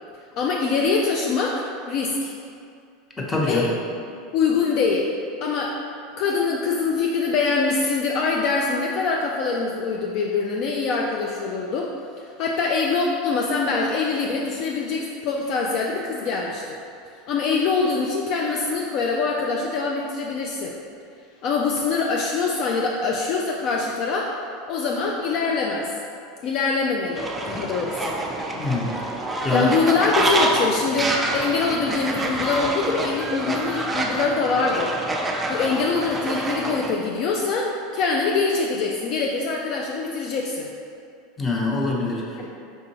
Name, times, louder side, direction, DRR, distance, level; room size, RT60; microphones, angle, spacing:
voice 1, 0.4-2.3 3.4-5.1 5.4-5.7 6.2-11.9 12.2-16.8 17.3-20.7 21.4-24.3 24.7-25.9 26.4-28.2 29.5-34.9 35.5-40.7 42.4-42.5, left 4 dB, 55° left, -1 dB, 0.3 m, -24 dB
voice 2, 3.2-3.7 28.5-28.9 29.4-29.7 41.4-42.2, left 3 dB, 20° left, -3 dB, 0.8 m, -24 dB
Fowl, 27.1-36.9, right 1 dB, 15° right, 0.4 m, -27 dB
4.5 x 2.7 x 2.7 m, 2.4 s
hypercardioid pair, 90°, 0 cm